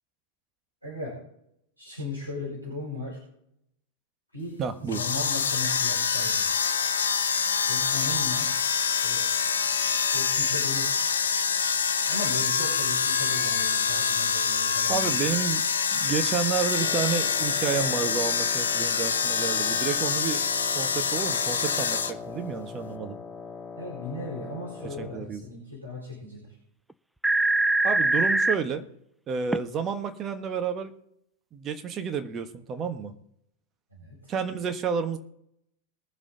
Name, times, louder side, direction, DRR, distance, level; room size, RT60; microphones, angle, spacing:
voice 1, 0.8-1.1 1.8-3.2 4.3-6.4 7.7-8.5 9.0-9.2 10.1-10.9 12.1-15.1 23.8-26.6 33.9-34.3, left 2 dB, 90° right, -7 dB, 5.7 m, -37 dB
voice 2, 4.6-5.0 14.9-15.6 15.9-20.4 20.7-23.2 24.8-25.4 27.8-28.9 29.3-30.9 31.5-33.1 34.3-35.2, right 6 dB, 25° right, 7 dB, 1.4 m, -30 dB
sound 1, 4.9-22.1, left 6 dB, 65° left, 0.9 m, -26 dB
Wind instrument woodwind instrument, 16.8-25.3, left 4 dB, 15° left, 0.8 m, -41 dB
sound 2, 26.9-27.0 27.2-28.6 29.5-29.6, right 2 dB, 5° right, 0.4 m, -22 dB
21.5 x 7.5 x 3.9 m, 0.74 s
figure-of-eight pair, 90°, 0 cm